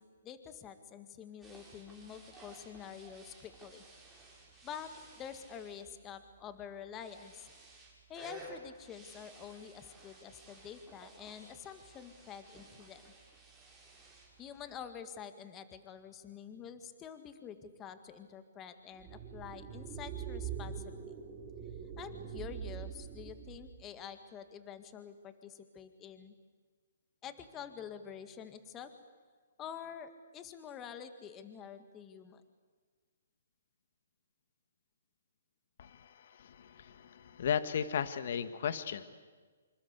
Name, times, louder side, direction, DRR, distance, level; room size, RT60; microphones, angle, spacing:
voice 1, 0.0-3.8 4.6-7.5 8.1-13.1 14.4-21.1 22.0-26.3 27.2-28.9 29.6-32.4, left 8 dB, 20° left, 10 dB, 1.8 m, -47 dB
sound 1, 1.4-14.8, right 2 dB, ahead, 7.0 m, -56 dB
sound 2, 19.0-23.8, right 8 dB, 25° right, 3.8 m, -43 dB
voice 2, 35.8-39.1, left 8 dB, 55° left, 12 dB, 1.6 m, -36 dB
26.5 x 26.0 x 8.3 m, 1.5 s
hypercardioid pair, 150°, 0 cm